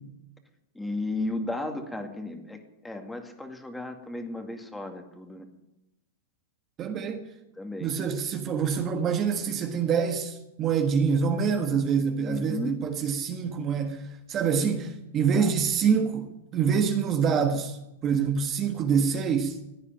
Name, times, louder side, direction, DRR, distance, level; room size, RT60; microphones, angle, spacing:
voice 1, 0.8-2.6 2.8-5.5 7.6-7.9 12.2-12.8 15.3-15.5, left 2 dB, 5° left, 2.2 m, -34 dB
voice 2, 6.8-7.3 7.8-19.6, right 6 dB, 30° right, 1.5 m, -26 dB
16.0 x 9.8 x 9.1 m
hypercardioid pair, 135°, 0 cm